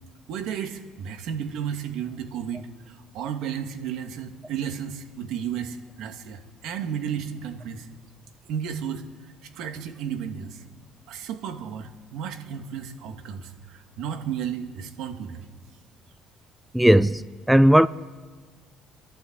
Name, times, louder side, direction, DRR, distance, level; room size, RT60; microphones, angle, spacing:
voice 1, 0.3-7.9 8.5-10.6 11.1-15.4, right 8 dB, 75° right, 2.4 m, -33 dB
voice 2, 16.7-17.9, right 1 dB, 5° right, 0.6 m, -17 dB
30.0 x 11.5 x 8.3 m
supercardioid pair, 85°, 0 cm